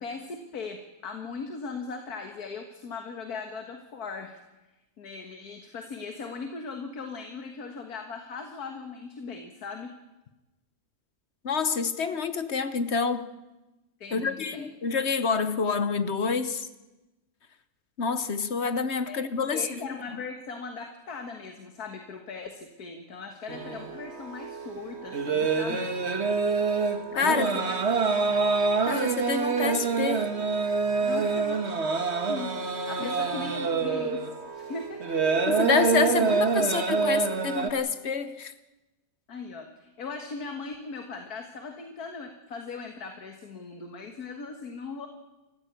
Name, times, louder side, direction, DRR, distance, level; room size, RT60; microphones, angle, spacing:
voice 1, 0.0-4.4 5.0-9.9 14.0-14.7 19.1-19.2 19.5-25.9 27.1-27.8 31.0-31.7 32.3-32.6 32.9-34.3 34.6-35.2 36.6-36.7 39.3-45.1, left 4 dB, 80° left, 2.1 m, -39 dB
voice 2, 11.4-13.3 14.1-16.7 18.0-19.8 27.1-27.6 28.9-30.3 33.0-33.1 35.5-38.5, left 5 dB, 50° left, 1.2 m, -27 dB
sound 1, 23.5-37.7, right 4 dB, 45° right, 1.7 m, -26 dB
29.0 x 14.5 x 8.4 m
omnidirectional pair, 1.6 m